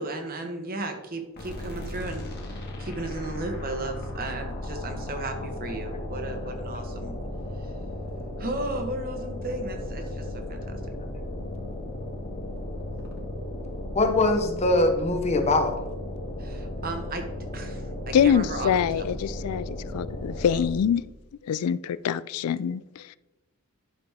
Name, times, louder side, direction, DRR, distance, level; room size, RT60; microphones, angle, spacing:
voice 1, 0.0-7.1 7.6-7.7 8.4-10.8 16.4-17.3 17.5-19.1, right 2 dB, 40° right, 1.2 m, -35 dB
sound 1, 1.4-21.0, left 1 dB, 45° left, 1.7 m, -35 dB
voice 2, 13.9-15.8, left 2 dB, 30° left, 0.9 m, -22 dB
voice 3, 18.1-21.0 21.4-23.2, left 8 dB, 80° left, 0.3 m, -25 dB
11.5 x 5.9 x 3.6 m
head